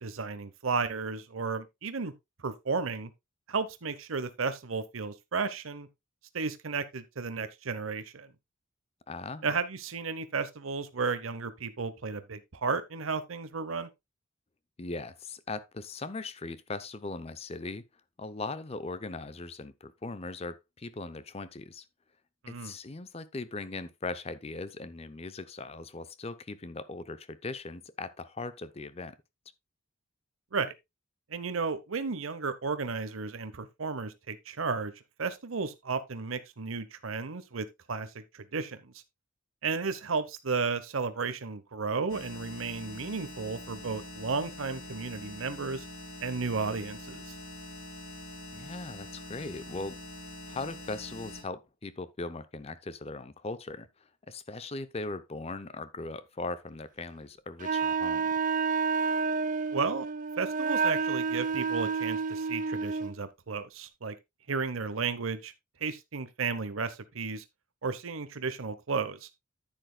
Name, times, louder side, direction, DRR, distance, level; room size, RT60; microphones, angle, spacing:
voice 1, 0.0-2.1 2.4-3.1 3.5-5.9 6.3-8.3 9.4-13.9 22.4-22.7 30.5-30.7 31.3-34.9 35.2-38.9 39.6-45.8 46.2-47.2 59.7-60.1 60.4-64.1 64.5-65.5 65.8-67.4 67.8-69.3, right 4 dB, 75° right, 0.8 m, -33 dB
voice 2, 9.1-9.5 14.8-17.8 18.2-21.8 22.5-29.2 48.5-50.0 50.5-53.9 54.3-58.3, left 3 dB, 30° left, 0.6 m, -39 dB
sound 1, 42.1-51.4, left 1 dB, 90° left, 3.1 m, -44 dB
Wind instrument woodwind instrument, 57.6-63.2, right 5 dB, 40° right, 0.5 m, -29 dB
10.5 x 9.1 x 2.2 m
head